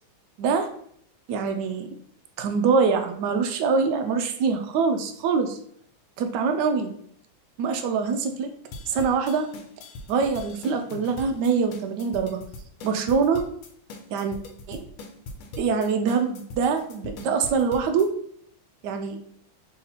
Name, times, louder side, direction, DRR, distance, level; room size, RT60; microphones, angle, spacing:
voice 1, 1.3-1.9 2.4-5.6 6.2-6.9 7.6-8.5 8.9-9.5 10.1-12.4 12.8-13.4 14.1-14.4 14.7-14.8 15.6-18.1 18.8-19.2, right 5 dB, 80° right, 5 dB, 0.9 m, -24 dB
sound 1, 8.7-18.1, left 2 dB, 85° left, 1.5 m, -41 dB
3.6 x 2.8 x 3.9 m, 0.65 s
omnidirectional pair, 2.3 m